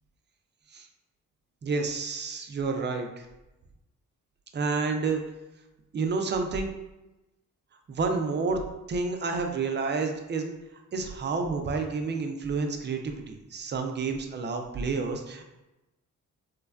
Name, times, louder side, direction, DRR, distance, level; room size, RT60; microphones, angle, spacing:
voice 1, 1.6-3.2 4.5-5.2 5.9-6.7 7.9-8.6 8.9-10.5 10.9-15.4, right 4 dB, 35° right, 4 dB, 0.4 m, -29 dB
3.1 x 2.1 x 2.4 m, 0.99 s
cardioid pair, 70°, 33 cm